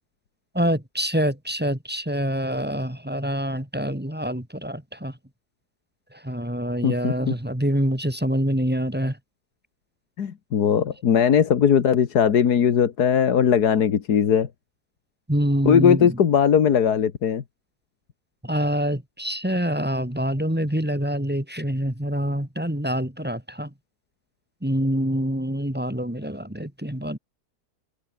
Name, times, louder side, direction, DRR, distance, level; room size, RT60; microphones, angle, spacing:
voice 1, 0.5-5.1 6.2-9.1 15.3-16.1 18.4-23.7 24.6-27.2, equal, 5° right, 2.8 m, -25 dB
voice 2, 6.8-7.4 10.2-14.5 15.7-17.4, left 8 dB, 75° left, 2.0 m, -19 dB
omnidirectional pair, 1.7 m